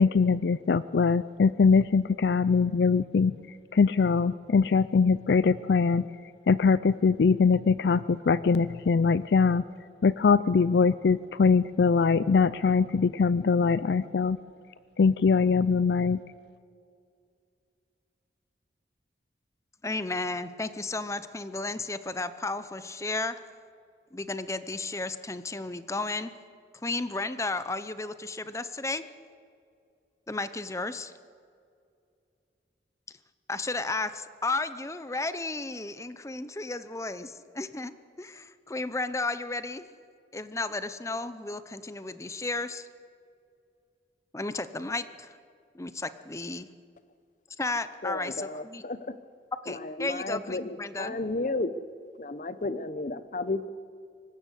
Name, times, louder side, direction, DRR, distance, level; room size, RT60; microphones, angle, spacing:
voice 1, 0.0-3.3 3.7-6.0 6.5-9.6 10.0-14.4 15.0-16.2, left 5 dB, 70° left, 17 dB, 0.4 m, -22 dB
voice 2, 19.8-23.3 24.1-26.3 26.8-29.0 30.3-31.1 33.5-37.9 38.2-39.8 40.3-42.9 44.3-45.4 45.7-46.7 47.6-48.8 49.6-51.2, left 3 dB, 15° left, 12 dB, 0.7 m, -33 dB
voice 3, 48.0-49.0 50.0-51.7 52.2-53.7, left 2 dB, 45° left, 13 dB, 0.9 m, -32 dB
25.0 x 14.0 x 8.3 m, 2.4 s
head